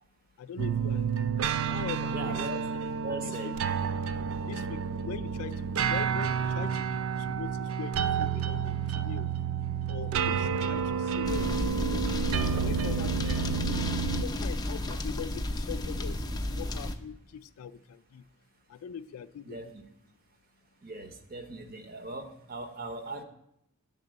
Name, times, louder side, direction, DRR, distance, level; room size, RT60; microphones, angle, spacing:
voice 1, 0.4-1.3 1.6-2.4 3.2-3.4 4.4-9.3 9.9-12.1 12.5-13.8 14.2-18.2 18.7-19.7, left 8 dB, 85° left, 0.3 m, -42 dB
sound 1, 0.6-14.2, right 7 dB, 70° right, 0.3 m, -30 dB
voice 2, 2.1-3.6 19.4-19.8 20.8-23.2, right 2 dB, 45° right, 0.7 m, -39 dB
sound 2, 11.2-16.9, left 1 dB, 20° left, 0.4 m, -32 dB
6.7 x 4.0 x 6.3 m
head